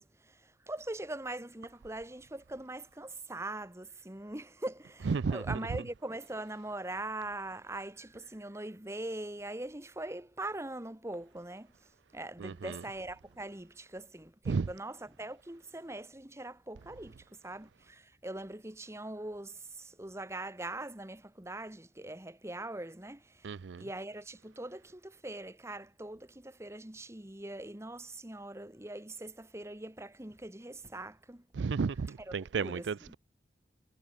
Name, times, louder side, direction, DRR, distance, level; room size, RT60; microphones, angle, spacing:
voice 1, 0.0-23.5 23.8-31.4 32.2-33.1, right 2 dB, 15° right, 1.4 m, -42 dB
voice 2, 5.1-5.6 12.4-12.8 14.5-14.7 23.4-23.9 31.5-33.2, right 5 dB, 80° right, 0.4 m, -33 dB
head